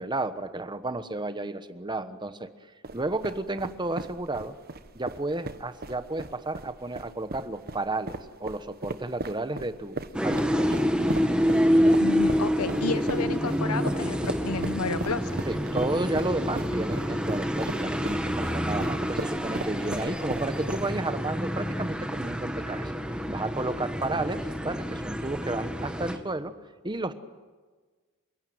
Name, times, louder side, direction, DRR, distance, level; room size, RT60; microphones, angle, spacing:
voice 1, 0.0-2.5 2.9-4.5 4.9-8.1 8.4-10.8 15.5-22.9 23.3-26.5 26.8-27.1, right 2 dB, 20° right, 11 dB, 1.2 m, -32 dB
sound 1, 2.8-21.1, right 2 dB, 45° right, 1.1 m, -37 dB
sound 2, 10.1-26.2, equal, 5° right, 1.8 m, -27 dB
voice 2, 12.0-15.4, left 3 dB, 90° left, 13 dB, 1.2 m, -31 dB
28.5 x 17.0 x 9.4 m, 1.4 s
head